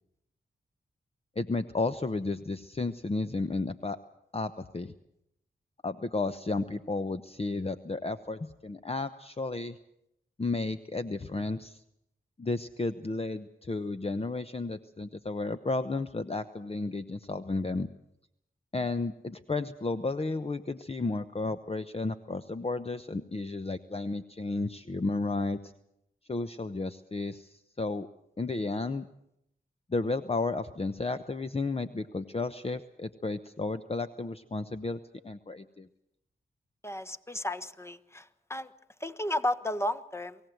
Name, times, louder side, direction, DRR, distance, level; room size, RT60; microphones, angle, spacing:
voice 1, 1.4-4.0 4.3-4.9 5.8-9.8 10.4-11.8 12.4-17.9 18.7-25.7 26.3-28.1 28.4-29.0 29.9-35.9, left 3 dB, 30° left, 10 dB, 0.9 m, -33 dB
voice 2, 36.8-38.7 39.0-40.4, left 1 dB, 15° left, 12 dB, 1.3 m, -33 dB
23.5 x 16.0 x 7.9 m, 0.79 s
cardioid pair, 45°, 20 cm